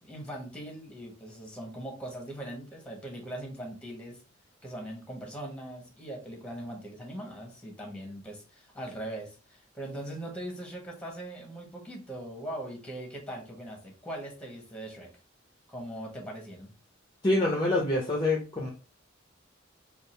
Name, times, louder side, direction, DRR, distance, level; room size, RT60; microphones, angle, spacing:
voice 1, 0.0-4.2 4.6-15.1 15.7-16.7, right 1 dB, 5° left, 1 dB, 1.1 m, -40 dB
voice 2, 17.2-18.7, left 2 dB, 20° left, -1 dB, 0.6 m, -26 dB
3.6 x 2.4 x 4.3 m, 0.34 s
head